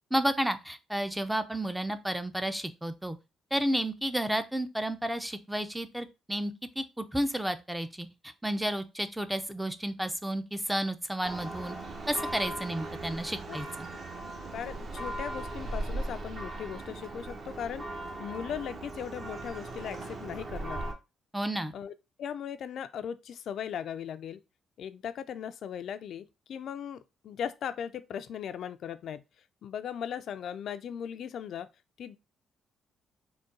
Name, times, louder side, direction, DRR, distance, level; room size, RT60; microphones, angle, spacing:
voice 1, 0.1-3.2 3.5-11.8 12.1-13.9 21.3-21.7, right 1 dB, 5° right, 0.4 m, -32 dB
Church bell, 11.2-20.9, right 2 dB, 50° right, 1.1 m, -38 dB
voice 2, 14.5-17.9 18.2-20.8 21.7-24.4 24.8-29.2 29.6-31.7 32.0-32.2, left 8 dB, 65° left, 0.3 m, -38 dB
3.9 x 2.2 x 3.7 m
cardioid pair, 90°, 0 cm